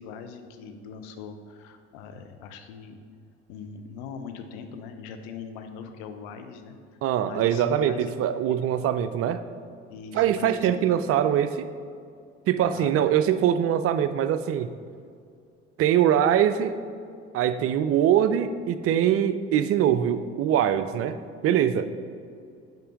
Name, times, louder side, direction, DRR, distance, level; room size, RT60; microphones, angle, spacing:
voice 1, 0.0-3.0 3.5-6.8 7.2-8.1 8.5-8.6 9.9-10.8 12.6-13.1 21.7-21.9, left 6 dB, 70° left, 7 dB, 0.7 m, -40 dB
voice 2, 7.0-9.4 10.1-11.7 12.5-14.7 15.8-16.8 17.3-21.2 21.4-21.9, right 10 dB, 45° right, 11 dB, 0.4 m, -23 dB
5.5 x 5.3 x 5.0 m, 2.3 s
hypercardioid pair, 60°, 34 cm